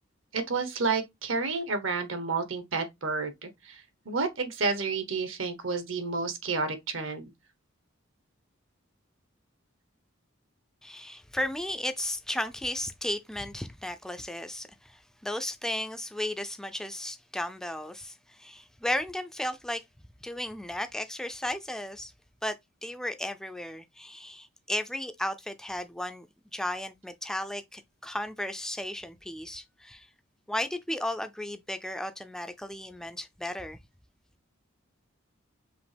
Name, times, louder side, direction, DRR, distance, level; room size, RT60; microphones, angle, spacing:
voice 1, 0.3-7.3, right 4 dB, 70° right, 1.0 m, -30 dB
voice 2, 10.8-19.8 20.2-22.1 22.4-22.6 22.8-26.3 26.5-30.1 30.5-33.8, left 1 dB, 5° left, 0.3 m, -34 dB
5.1 x 2.8 x 3.3 m
head